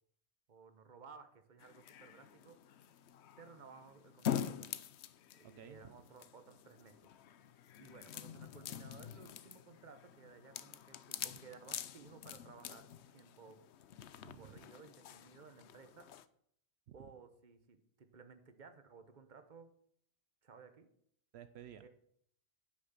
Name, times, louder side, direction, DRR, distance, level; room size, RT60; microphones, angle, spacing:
voice 1, 0.5-2.6 3.4-4.7 5.3-7.1 7.8-13.6 14.3-16.1 16.9-19.7 20.4-20.9 21.8-21.9, right 5 dB, 45° right, 9 dB, 1.2 m, -57 dB
sound 1, 1.6-16.3, left 9 dB, 90° left, 0.9 m, -46 dB
voice 2, 5.4-5.8 14.2-14.6 16.9-17.1 21.3-21.9, right 10 dB, 75° right, 11 dB, 0.9 m, -54 dB
9.9 x 6.2 x 7.2 m, 0.68 s
omnidirectional pair, 1.1 m